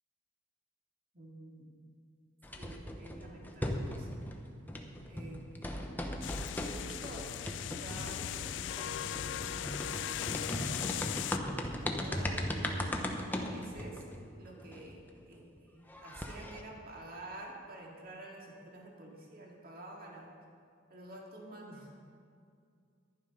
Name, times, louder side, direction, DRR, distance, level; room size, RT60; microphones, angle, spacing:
voice 1, 1.1-1.8 2.6-4.3 5.1-6.2 6.6-7.3 7.6-10.8 11.5-12.9 13.3-20.3 20.9-21.9, right 1 dB, 55° right, -1 dB, 2.1 m, -49 dB
sound 1, 2.4-4.4 4.7-15.1 15.6-15.7 15.9-16.6, left 1 dB, 10° left, 0.9 m, -38 dB
sound 2, 6.2-11.4, left 11 dB, 75° left, 0.3 m, -38 dB
12.0 x 11.0 x 5.3 m, 2.3 s
head